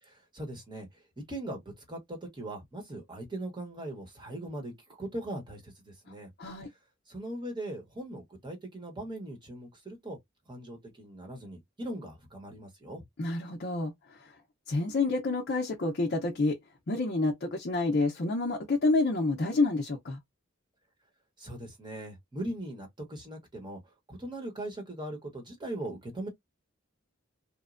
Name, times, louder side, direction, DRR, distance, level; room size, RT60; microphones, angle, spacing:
voice 1, 0.0-0.9 1.2-6.3 7.1-10.2 10.5-13.0 21.4-26.3, right 1 dB, 25° right, 1.0 m, -40 dB
voice 2, 13.2-13.9 14.7-16.6 16.9-20.2, left 3 dB, 50° left, 0.6 m, -28 dB
3.0 x 2.1 x 2.4 m
head